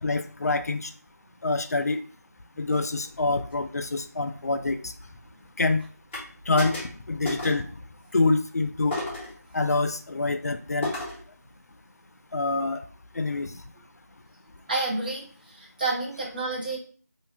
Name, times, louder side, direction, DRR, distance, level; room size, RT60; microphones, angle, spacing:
voice 1, 0.0-0.9 1.4-2.0 2.6-4.9 5.6-5.8 6.5-6.8 7.1-7.7 8.1-9.0 9.5-10.9 12.3-12.8 13.1-13.6, left 3 dB, 65° left, 8 dB, 0.4 m, -26 dB
sound 1, 6.1-6.3 6.6-7.0 7.2-7.7 8.9-9.4 10.8-11.2, left 1 dB, 10° left, 0.7 m, -32 dB
voice 2, 14.7-16.8, right 2 dB, 30° right, -3 dB, 0.8 m, -29 dB
2.9 x 2.4 x 3.0 m, 0.42 s
figure-of-eight pair, 170°, 9 cm